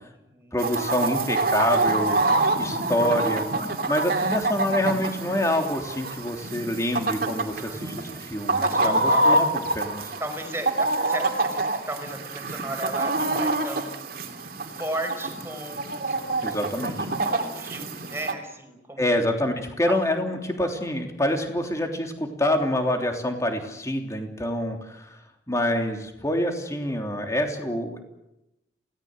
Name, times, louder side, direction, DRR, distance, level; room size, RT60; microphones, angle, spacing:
voice 1, 0.5-2.2 2.6-3.4 3.9-9.5 9.7-10.1 16.4-17.1 19.0-25.2 25.5-28.0, left 1 dB, 15° left, 3 dB, 3.2 m, -26 dB
Chicken rooster, 0.6-18.3, right 2 dB, 55° right, 2.7 m, -26 dB
voice 2, 7.5-9.6 10.2-14.2 14.7-16.3 17.3-19.3 19.9-20.0, right 1 dB, 15° right, 4 dB, 5.1 m, -35 dB
28.5 x 18.5 x 7.9 m, 0.90 s
head